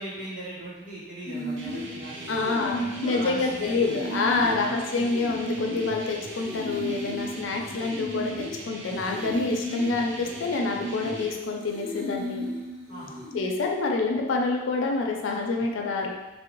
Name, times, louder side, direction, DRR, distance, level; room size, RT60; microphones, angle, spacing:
voice 1, 0.0-4.0 4.4-4.7 12.9-13.2 15.6-15.7, right 1 dB, 45° right, -9 dB, 1.2 m, -40 dB
sound 1, 1.2-13.4, equal, 5° right, 1.0 m, -35 dB
sound 2, 1.6-11.3, right 2 dB, 80° right, 0.6 m, -41 dB
voice 2, 2.3-12.5 13.3-16.1, left 3 dB, 80° left, 1 dB, 0.4 m, -27 dB
3.4 x 2.0 x 3.0 m, 1.1 s
head